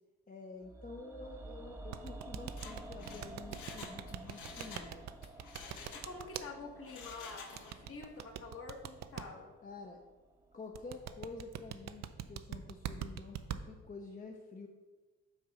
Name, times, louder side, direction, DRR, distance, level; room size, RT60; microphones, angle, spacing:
voice 1, 0.3-5.1 9.6-10.0 10.5-14.7, left 3 dB, 30° left, 2 dB, 0.7 m, -49 dB
sound 1, 0.6-10.7 11.0-11.1, right 2 dB, 10° right, 0.8 m, -51 dB
sound 2, 1.9-6.5 7.6-9.2 10.7-13.6, right 11 dB, 60° right, 0.5 m, -42 dB
Mechanisms, 2.6-4.9 5.2-6.4 6.8-7.9 8.2-8.3, left 5 dB, 80° left, 1.1 m, -50 dB
voice 2, 5.9-9.5, left 3 dB, 45° left, 2 dB, 1.4 m, -47 dB
6.6 x 3.9 x 5.9 m, 1.2 s
cardioid pair, 90°, 30 cm